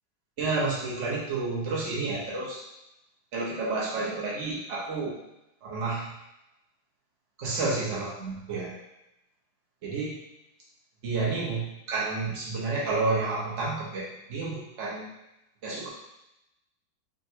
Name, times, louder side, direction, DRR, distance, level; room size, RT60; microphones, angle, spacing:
voice 1, 0.4-2.6 3.3-5.1 5.6-6.1 7.4-8.7 9.8-10.2 11.0-15.1 15.6-15.9, right 3 dB, 45° right, -6 dB, 1.2 m, -30 dB
5.4 x 2.4 x 2.9 m, 0.89 s
omnidirectional pair, 2.1 m